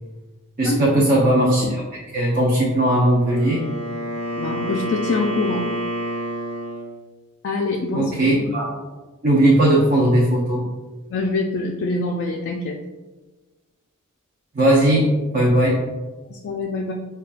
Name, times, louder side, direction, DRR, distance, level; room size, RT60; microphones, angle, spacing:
voice 1, 0.6-1.8 2.1-3.6 7.9-8.7 9.2-10.6 14.5-15.8, right 1 dB, 40° right, -4 dB, 0.5 m, -18 dB
Wind instrument woodwind instrument, 3.1-7.0, equal, 80° right, 0.9 m, -28 dB
voice 2, 4.4-5.7 7.4-8.1 11.1-12.8 16.3-16.9, left 3 dB, 50° left, 0 dB, 0.3 m, -24 dB
5.1 x 2.2 x 2.4 m, 1.2 s
head